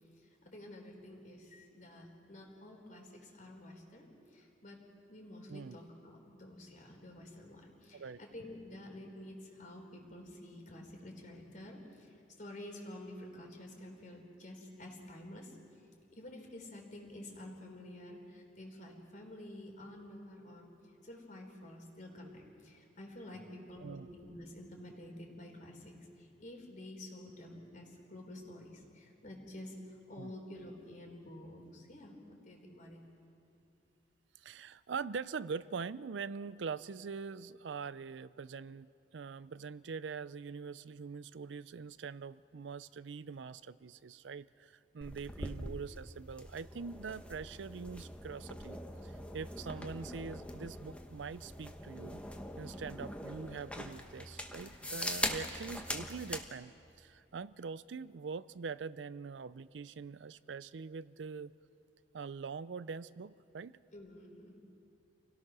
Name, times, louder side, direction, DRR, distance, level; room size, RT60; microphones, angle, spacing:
voice 1, 0.2-4.8 5.1-15.5 16.1-20.7 21.0-33.0 63.9-64.8, left 1 dB, 45° left, 1 dB, 3.8 m, -50 dB
voice 2, 34.4-52.2 52.6-61.5 62.1-63.7, right 5 dB, 85° right, 17 dB, 0.5 m, -43 dB
sound 1, 45.0-56.5, left 1 dB, 5° left, 1.3 m, -42 dB
29.0 x 17.5 x 6.2 m, 2.8 s
head